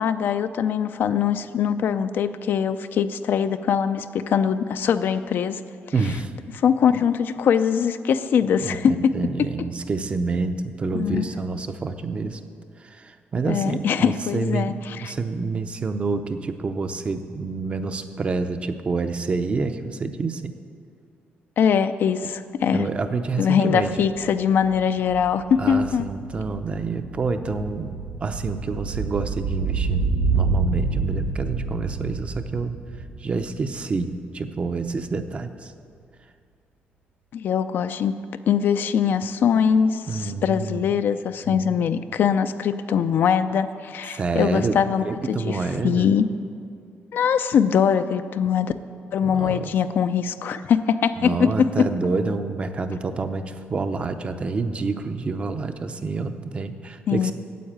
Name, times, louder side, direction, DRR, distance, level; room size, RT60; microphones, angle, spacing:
voice 1, 0.0-5.6 6.5-9.5 10.9-11.3 13.5-15.1 21.6-22.9 23.4-26.1 37.3-38.1 38.5-45.6 45.8-46.3 47.1-48.7 49.1-51.5 51.8-51.9 57.1-57.3, left 7 dB, 60° left, 11 dB, 0.5 m, -22 dB
voice 2, 5.9-6.3 8.6-8.8 9.1-12.4 12.8-20.5 22.7-24.1 25.6-28.0 28.2-32.8 33.2-35.7 40.1-40.9 41.3-41.8 44.1-46.1 49.2-49.7 51.2-57.3, right 4 dB, 30° right, 8 dB, 0.6 m, -28 dB
sound 1, 23.8-23.9 24.2-34.5 34.8-34.9, right 4 dB, 80° right, 1.1 m, -28 dB
9.3 x 8.1 x 8.7 m, 2.3 s
cardioid pair, 150°, 4 cm